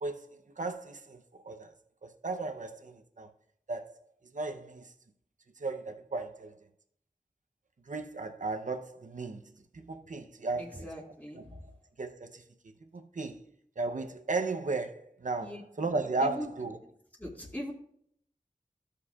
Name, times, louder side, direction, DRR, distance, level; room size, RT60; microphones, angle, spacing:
voice 1, 0.0-1.7 2.0-3.3 3.7-4.0 4.3-4.9 5.6-6.5 7.9-9.4 9.7-10.9 11.3-11.6 12.0-12.4 12.9-13.4 13.8-16.8, right 3 dB, 65° right, 0.7 m, -35 dB
voice 2, 10.6-11.6 15.4-15.6 16.2-16.5 17.2-17.7, equal, 15° left, 2.0 m, -40 dB
13.5 x 6.5 x 2.4 m
wide cardioid pair, 45°, 14 cm